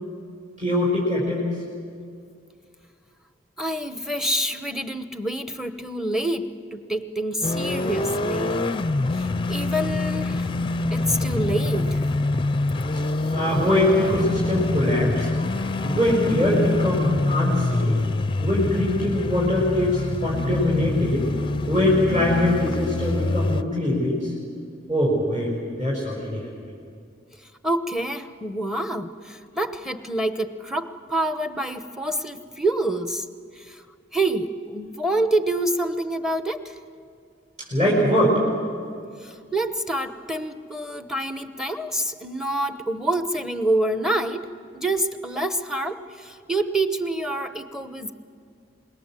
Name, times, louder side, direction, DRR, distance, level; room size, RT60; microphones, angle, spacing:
voice 1, 0.6-1.5 13.3-15.3 15.8-18.0 18.4-21.3 21.7-24.3 24.9-25.5 25.8-26.5 37.7-38.4, left 1 dB, 35° right, -5 dB, 5.5 m, -22 dB
voice 2, 3.6-8.7 9.1-10.5 10.9-12.0 27.6-33.3 33.5-33.8 34.1-36.8 39.2-48.1, right 1 dB, 5° right, 10 dB, 0.9 m, -27 dB
sound 1, 7.4-23.6, left 2 dB, 25° left, 0.5 m, -25 dB
26.0 x 21.5 x 7.6 m, 2.3 s
head